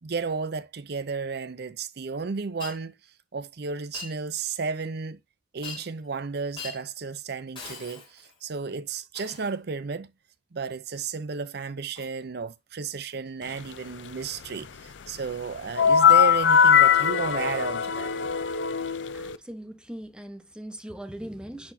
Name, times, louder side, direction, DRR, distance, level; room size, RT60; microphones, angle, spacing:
voice 1, 0.0-2.9 3.3-5.2 5.5-10.1 10.5-18.1, right 5 dB, 60° right, 0.6 m, -33 dB
Shatter, 2.6-2.8 3.9-4.2 5.6-6.1 6.6-6.8 7.6-8.4 9.1-9.6 12.0-12.2 13.1-13.3 14.0-14.2 17.0-17.1 18.2-18.3, left 5 dB, 30° left, 3.1 m, -42 dB
sound 1, 15.8-19.4, left 8 dB, 80° left, 0.5 m, -20 dB
voice 2, 19.1-21.7, right 1 dB, 5° right, 1.0 m, -40 dB
10.5 x 4.4 x 2.7 m
head